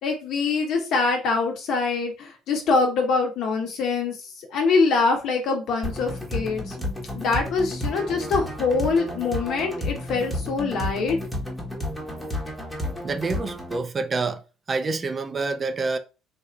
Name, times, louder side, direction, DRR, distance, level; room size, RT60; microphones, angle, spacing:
voice 1, 0.0-6.8 7.1-11.2, left 4 dB, 60° left, 1.1 m, -24 dB
sound 1, 5.8-13.8, left 1 dB, ahead, 1.2 m, -32 dB
voice 2, 13.0-14.4 14.7-16.0, right 3 dB, 25° right, 0.6 m, -27 dB
3.5 x 2.6 x 4.4 m
cardioid pair, 130°, 0 cm